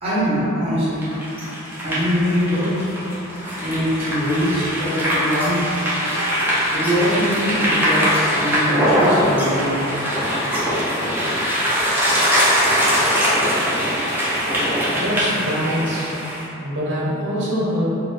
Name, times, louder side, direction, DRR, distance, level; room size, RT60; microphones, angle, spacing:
voice 1, 0.0-1.1 1.8-2.9 3.6-5.8 6.1-6.3 6.7-9.8, equal, 30° right, -11 dB, 1.1 m, -22 dB
sound 1, 1.0-16.4, equal, 10° right, 0.6 m, -21 dB
voice 2, 14.9-16.1 16.6-17.9, equal, 55° right, -7 dB, 0.9 m, -24 dB
3.7 x 2.2 x 3.3 m, 2.9 s
head